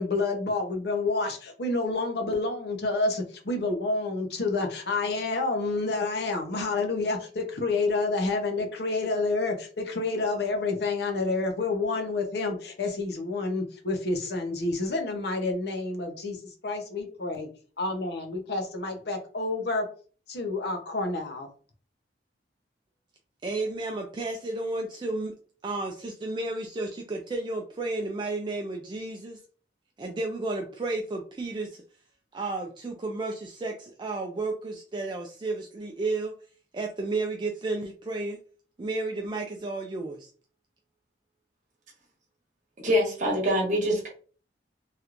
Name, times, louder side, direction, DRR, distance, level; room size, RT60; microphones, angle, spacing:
voice 1, 0.0-17.5 17.8-19.9 20.3-21.5, left 3 dB, 65° left, 3 dB, 0.8 m, -29 dB
voice 2, 23.4-25.3 25.6-29.4 30.0-31.8 32.3-36.3 36.7-38.4 38.8-40.3, right 2 dB, 25° right, 2 dB, 0.4 m, -32 dB
voice 3, 42.8-44.1, equal, 45° right, -1 dB, 1.2 m, -24 dB
3.2 x 3.0 x 2.5 m, 0.40 s
head